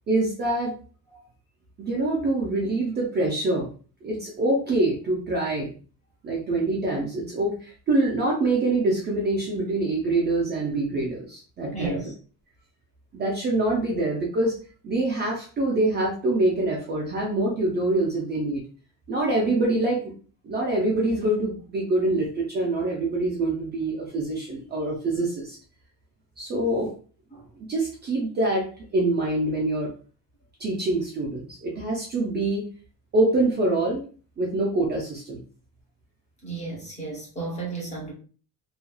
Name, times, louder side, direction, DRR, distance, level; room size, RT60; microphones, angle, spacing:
voice 1, 0.1-0.7 1.8-3.7 4.0-5.7 6.2-12.0 13.1-14.5 14.8-18.6 19.1-20.0 20.4-25.6 26.4-26.9 27.6-29.9 30.6-32.6 33.1-34.0 34.4-35.4, right 2 dB, 30° right, 0.4 m, -25 dB
voice 2, 11.7-12.1 27.3-27.4 36.4-38.1, right 4 dB, 20° left, 0.8 m, -33 dB
3.0 x 2.3 x 2.2 m
cardioid pair, 175°, 37 cm